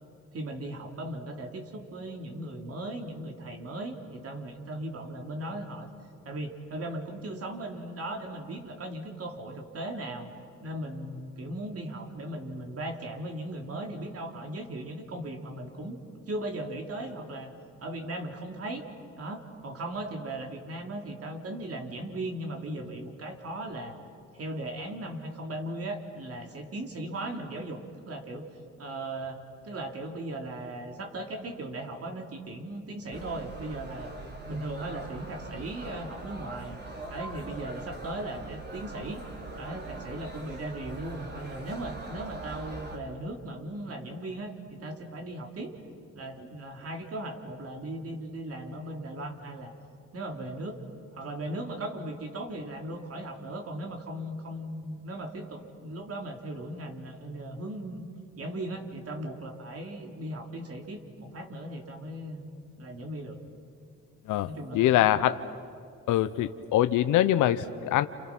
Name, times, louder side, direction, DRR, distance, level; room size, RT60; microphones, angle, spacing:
voice 1, 0.3-5.9 6.2-10.3 10.6-16.0 16.3-17.5 17.8-18.8 19.1-23.9 24.3-28.4 28.8-34.1 34.5-36.8 37.1-39.2 39.5-45.7 46.1-49.7 50.1-50.8 51.1-58.1 58.4-62.5 62.8-63.4 64.4-65.0, right 1 dB, 50° right, 3 dB, 3.5 m, -37 dB
sound 1, 33.1-43.0, right 2 dB, 35° right, 3.7 m, -42 dB
voice 2, 64.3-65.3 66.1-68.1, left 13 dB, 85° left, 11 dB, 0.8 m, -24 dB
29.5 x 29.0 x 6.1 m, 2.4 s
cardioid pair, 90°, 30 cm